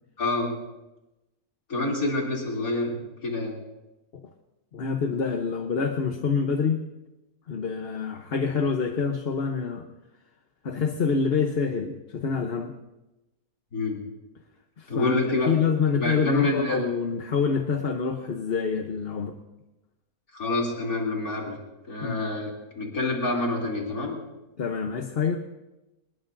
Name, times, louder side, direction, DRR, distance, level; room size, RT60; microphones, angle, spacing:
voice 1, 0.2-0.5 1.7-3.5 13.7-14.0 14.9-15.5 15.9-16.8 20.3-21.6 21.9-24.2, left 2 dB, 80° left, -2 dB, 3.5 m, -27 dB
voice 2, 4.7-6.8 7.5-9.9 10.6-12.8 14.8-19.3 22.0-22.2 24.6-25.4, left 5 dB, 45° left, 4 dB, 1.0 m, -26 dB
25.5 x 20.0 x 2.6 m, 1.0 s
omnidirectional pair, 1.5 m